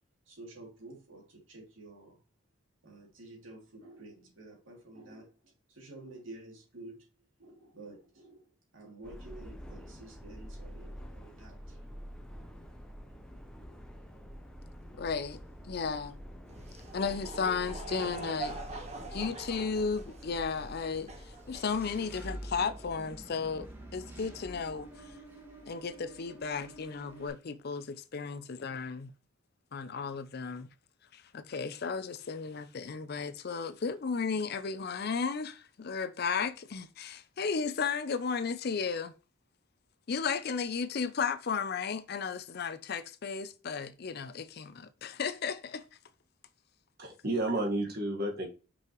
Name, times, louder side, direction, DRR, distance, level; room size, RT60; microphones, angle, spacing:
voice 1, 0.3-2.2 2.8-7.1 7.4-11.8, right 2 dB, 80° right, 2.7 m, -50 dB
Subway metro underground, 9.0-25.2, equal, 5° left, 0.7 m, -48 dB
voice 2, 15.0-16.2 16.9-18.8 19.1-24.9 25.7-29.1 29.7-30.7 31.1-39.1 40.1-45.8, left 5 dB, 50° left, 0.5 m, -34 dB
Laughter / Crowd, 16.5-22.2, right 3 dB, 35° right, 1.2 m, -43 dB
Engine / Mechanisms, 21.4-27.3, right 1 dB, 10° right, 1.6 m, -48 dB
voice 3, 47.0-48.5, right 1 dB, 50° right, 1.6 m, -31 dB
5.7 x 5.4 x 3.0 m
head